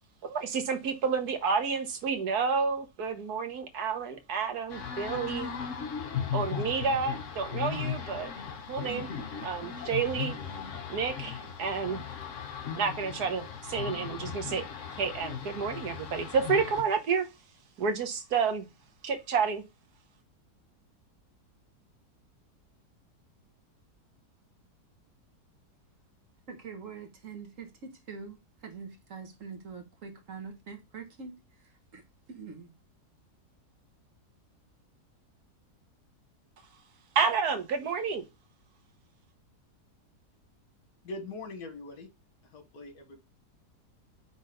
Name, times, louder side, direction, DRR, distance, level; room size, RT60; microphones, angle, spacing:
voice 1, 0.2-5.5 6.3-8.3 8.7-9.1 9.4-10.4 10.9-12.0 12.8-14.7 15.0-17.3 17.8-18.7 19.0-19.6 37.1-38.2, right 5 dB, 70° right, 1.5 m, -30 dB
sound 1, 4.7-16.8, left 7 dB, 55° left, 1.2 m, -37 dB
voice 2, 26.5-32.7, right 5 dB, 55° right, 1.6 m, -45 dB
voice 3, 41.0-42.1 42.5-43.2, left 2 dB, 70° left, 1.9 m, -41 dB
5.5 x 3.8 x 5.0 m
omnidirectional pair, 1.7 m